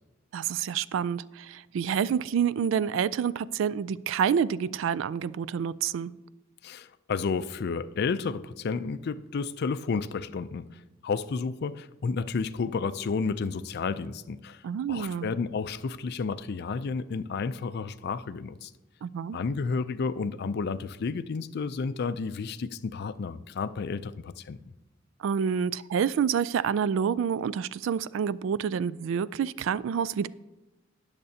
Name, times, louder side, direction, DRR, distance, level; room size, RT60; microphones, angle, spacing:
voice 1, 0.3-6.1 14.6-15.3 19.0-19.4 25.2-30.3, right 7 dB, 70° right, 0.3 m, -28 dB
voice 2, 6.6-14.6 14.9-18.7 19.3-24.6, left 4 dB, 55° left, 0.4 m, -31 dB
19.0 x 6.7 x 2.8 m
head